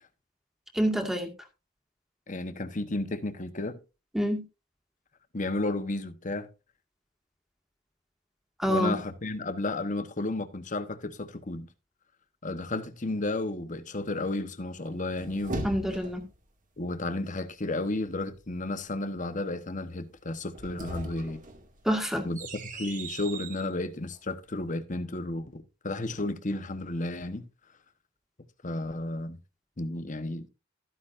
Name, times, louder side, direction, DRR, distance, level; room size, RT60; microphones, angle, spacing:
voice 1, 0.7-1.3 4.1-4.4 8.6-8.9 15.6-16.2 21.9-22.3, equal, ahead, 1.9 m, -27 dB
voice 2, 2.3-3.8 5.3-6.5 8.7-11.7 12.4-15.7 16.8-21.4 22.2-22.4 22.7-27.4 28.6-29.4 29.8-30.5, left 2 dB, 40° left, 1.1 m, -32 dB
sound 1, 14.9-16.4 20.4-23.7, right 2 dB, 40° right, 2.3 m, -39 dB
13.5 x 9.9 x 2.6 m
head